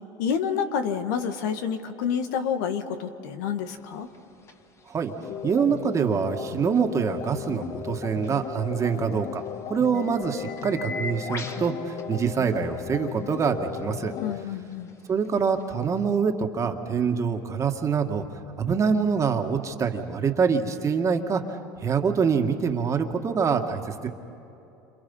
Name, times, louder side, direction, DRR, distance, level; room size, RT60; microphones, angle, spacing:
voice 1, 0.2-4.1 14.2-14.9, left 7 dB, 85° left, 7 dB, 1.7 m, -28 dB
sound 1, 3.6-16.2, left 3 dB, 30° left, 2.0 m, -45 dB
sound 2, 5.2-14.5, left 11 dB, 55° left, 0.5 m, -36 dB
voice 2, 5.4-9.4 9.7-14.1 15.1-18.2 18.6-24.1, right 6 dB, 35° right, 4 dB, 1.9 m, -25 dB
29.0 x 27.5 x 5.6 m, 3.0 s
supercardioid pair, 95°, 9 cm